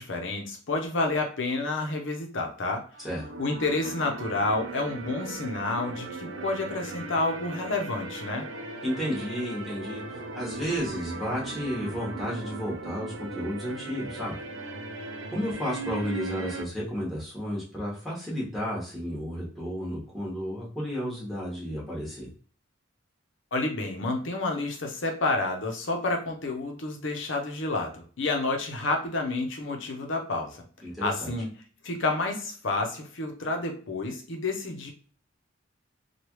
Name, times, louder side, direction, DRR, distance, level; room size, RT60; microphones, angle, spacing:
voice 1, 0.0-2.8 3.4-8.5 23.5-30.6 31.0-31.5 31.8-34.9, left 2 dB, 65° left, 2 dB, 0.7 m, -29 dB
sound 1, 2.9-16.6, right 3 dB, 75° right, 0.5 m, -38 dB
voice 2, 8.8-14.4 15.3-22.3 30.8-31.3, equal, ahead, -7 dB, 1.2 m, -32 dB
3.1 x 2.3 x 3.1 m, 0.42 s
head